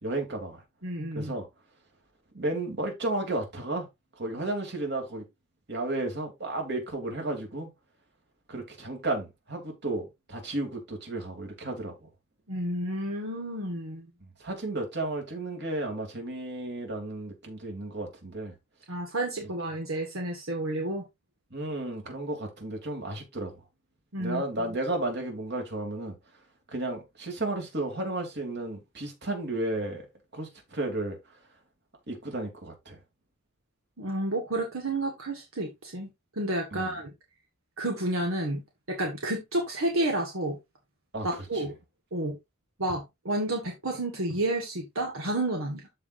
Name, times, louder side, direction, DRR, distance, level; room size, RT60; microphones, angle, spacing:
voice 1, 0.0-0.6 1.1-1.4 2.3-3.9 4.2-5.2 5.7-7.7 8.5-12.1 14.4-18.5 21.5-23.5 24.2-26.1 26.7-30.1 30.3-31.2 32.1-33.0 36.7-36.9 41.1-41.3 41.5-41.6, right 2 dB, 55° right, 3.0 m, -33 dB
voice 2, 0.8-1.3 12.5-14.1 18.9-21.0 24.1-24.4 34.0-36.1 36.3-37.1 37.8-38.6 38.9-40.6 41.2-41.7 42.1-42.3 42.8-45.8, right 1 dB, 80° right, 1.8 m, -30 dB
13.5 x 4.8 x 2.6 m
head